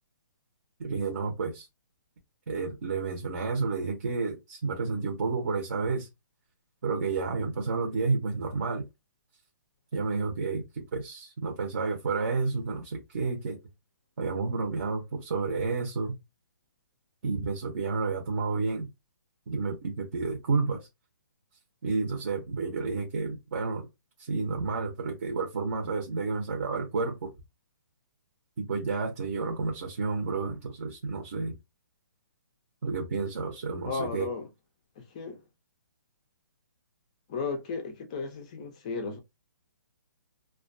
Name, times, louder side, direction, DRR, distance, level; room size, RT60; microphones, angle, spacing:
voice 1, 0.8-1.7 2.5-6.1 6.8-8.8 9.9-13.6 14.2-16.1 17.2-18.9 19.5-20.9 21.8-23.9 24.2-27.3 28.6-31.5 32.8-34.3, right 4 dB, 50° right, 0.7 m, -30 dB
voice 2, 33.8-34.5 35.0-35.4 37.3-39.2, left 4 dB, 20° left, 0.3 m, -34 dB
2.4 x 2.2 x 2.4 m
hypercardioid pair, 170°, 11 cm